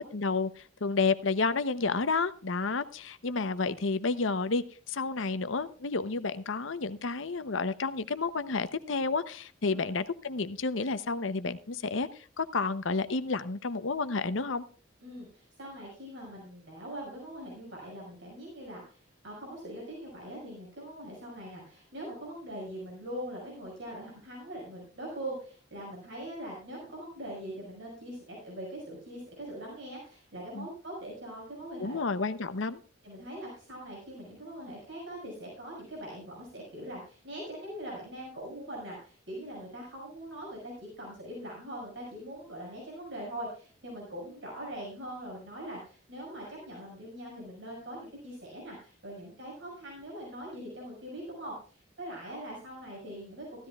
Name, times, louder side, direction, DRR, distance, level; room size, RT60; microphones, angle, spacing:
voice 1, 0.0-12.1 12.4-14.6 30.5-30.7 31.8-32.8, left 4 dB, 80° left, 0.8 m, -30 dB
voice 2, 15.0-32.0 33.0-53.4, right 1 dB, 70° right, 5.6 m, -42 dB
15.5 x 13.0 x 2.4 m
head